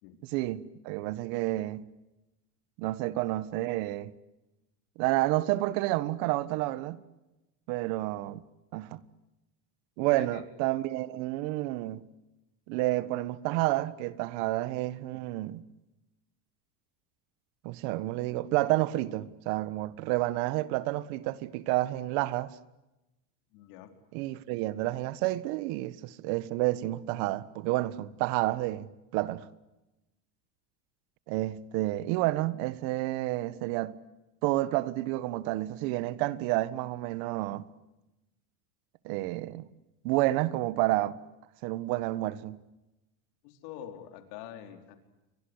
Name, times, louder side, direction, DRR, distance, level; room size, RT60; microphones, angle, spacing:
voice 1, 0.2-1.9 2.8-4.1 5.0-7.0 7.7-8.4 8.7-9.0 10.0-12.1 12.7-15.6 17.6-22.5 24.1-29.4 31.3-34.0 34.4-37.6 39.0-39.7 40.0-41.2 41.6-42.6, right 17 dB, 60° right, 1.6 m, -30 dB
voice 2, 10.1-10.4 23.5-23.9 43.4-45.0, left 10 dB, 70° left, 4.7 m, -45 dB
29.5 x 24.0 x 8.1 m
supercardioid pair, 145°, 49 cm